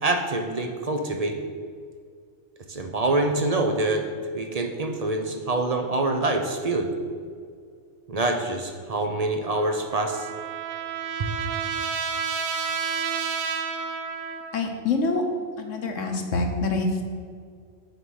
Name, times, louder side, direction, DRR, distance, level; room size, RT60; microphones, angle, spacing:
voice 1, 0.0-1.4 2.7-4.0 4.3-6.9 8.1-10.3 11.2-11.3, right 2 dB, 40° right, 4 dB, 0.6 m, -25 dB
Trumpet, 9.5-14.7, right 6 dB, 85° right, 1.2 m, -30 dB
voice 2, 14.5-15.2 15.6-17.0, left 3 dB, 70° left, 4 dB, 1.3 m, -26 dB
6.6 x 5.4 x 6.3 m, 2.1 s
omnidirectional pair, 1.4 m